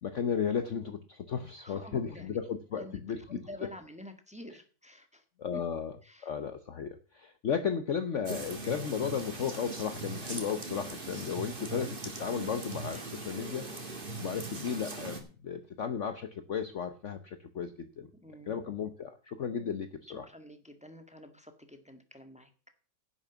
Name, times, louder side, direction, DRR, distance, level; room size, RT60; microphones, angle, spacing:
voice 1, 0.0-3.4 5.4-5.9 6.2-13.7 14.2-15.2 15.4-18.1 18.5-20.3, left 7 dB, 50° left, 9 dB, 1.0 m, -34 dB
voice 2, 1.6-2.4 2.7-5.2 5.5-5.6 6.0-6.3 11.8-12.0 12.9-13.1 18.2-18.6 19.6-19.8 20.1-22.5, left 1 dB, 5° right, 7 dB, 1.5 m, -48 dB
sound 1, 8.3-15.2, right 3 dB, 30° right, 2.1 m, -40 dB
11.0 x 7.2 x 7.2 m, 0.39 s
omnidirectional pair, 1.9 m